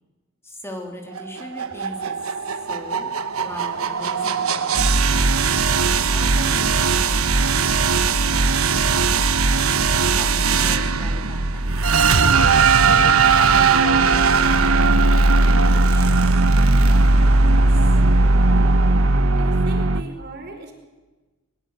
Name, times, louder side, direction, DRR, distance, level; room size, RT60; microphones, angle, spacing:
voice 1, 0.4-2.3 2.6-3.1 3.4-5.1 6.0-9.3 10.0-12.2 12.8-18.0, left 1 dB, 10° left, 1 dB, 3.2 m, -40 dB
sound 1, 1.2-20.0, right 3 dB, 75° right, 1.2 m, -18 dB
voice 2, 19.3-20.7, right 2 dB, 50° right, 3 dB, 4.6 m, -38 dB
22.0 x 21.0 x 8.0 m, 1.2 s
head